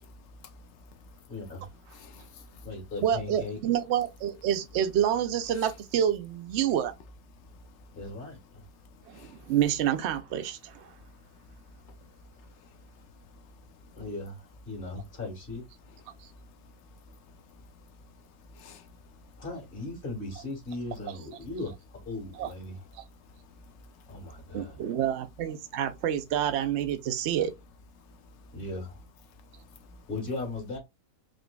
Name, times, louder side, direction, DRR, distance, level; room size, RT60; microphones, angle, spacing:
voice 1, 0.0-0.7 2.0-2.3 5.5-5.6 7.5-8.0 8.8-9.5 10.9-14.0 16.1-19.4 23.1-24.6 28.0-28.6 29.5-30.1, left 2 dB, 70° left, 0.6 m, -53 dB
voice 2, 1.3-1.6 2.6-3.6 7.9-8.6 13.9-15.6 19.4-21.7 22.0-22.8 24.1-24.8 28.5-29.0 30.1-30.8, left 2 dB, 35° left, 1.5 m, -37 dB
voice 3, 3.0-6.9 9.1-10.9 22.4-22.5 24.5-27.5, right 10 dB, 80° right, 0.6 m, -28 dB
3.8 x 3.0 x 2.2 m
omnidirectional pair, 1.8 m